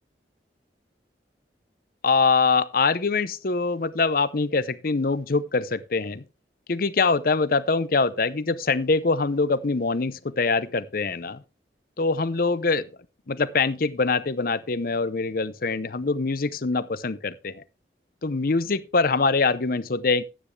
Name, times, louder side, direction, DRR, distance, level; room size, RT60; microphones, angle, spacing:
voice 1, 2.0-6.2 6.7-11.4 12.0-12.9 13.3-17.5 18.2-20.2, left 4 dB, 55° left, 0.7 m, -24 dB
12.0 x 9.5 x 3.3 m
head